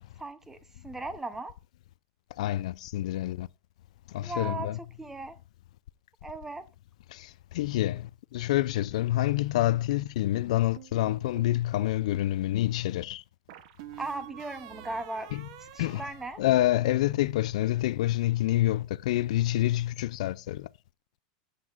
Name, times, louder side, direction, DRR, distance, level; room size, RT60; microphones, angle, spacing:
voice 1, 0.2-1.5 4.2-4.7 5.0-5.4 6.2-6.6 14.0-15.3 15.6-16.4, right 2 dB, 10° right, 0.7 m, -37 dB
voice 2, 2.4-3.5 4.1-4.8 7.1-13.2 15.3-15.5 15.8-16.0 16.4-20.7, left 15 dB, 75° left, 0.4 m, -27 dB
sound 1, 10.8-11.6 13.5-17.1, right 12 dB, 60° right, 0.9 m, -48 dB
13.5 x 8.1 x 2.5 m
supercardioid pair, 165°, 4 cm